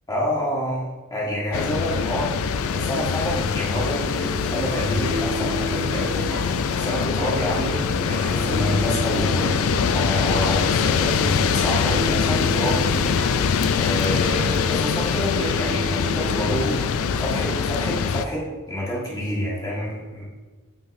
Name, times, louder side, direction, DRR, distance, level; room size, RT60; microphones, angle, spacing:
voice 1, 0.1-2.3 2.7-6.3 6.7-13.0 13.7-16.8 17.2-20.2, equal, 15° left, -6 dB, 1.5 m, -28 dB
sound 1, 1.5-18.2, left 6 dB, 65° left, 0.3 m, -23 dB
sound 2, 3.7-17.5, equal, 45° right, 1.5 m, -33 dB
9.4 x 3.8 x 2.6 m, 1.3 s
head